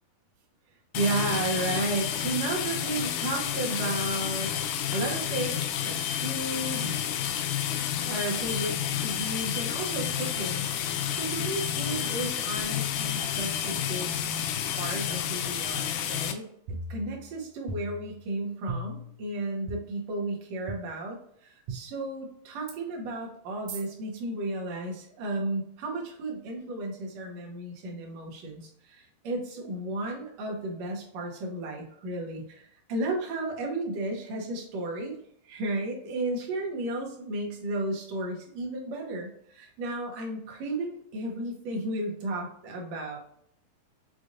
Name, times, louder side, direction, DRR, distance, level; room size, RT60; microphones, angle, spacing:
sound 1, 0.9-16.3, left 9 dB, 80° left, 2.0 m, -30 dB
voice 1, 0.9-4.5 4.9-7.0 8.0-14.2 14.8-35.2 35.4-43.2, right 2 dB, 65° right, -1 dB, 1.8 m, -33 dB
sound 2, 16.7-17.4 17.7-18.3 18.7-19.2 19.7-19.8 20.7-20.8 21.7-21.8 22.7-22.8 23.7-23.8, right 1 dB, 85° right, 1.4 m, -37 dB
6.3 x 2.5 x 2.5 m, 0.69 s
omnidirectional pair, 3.9 m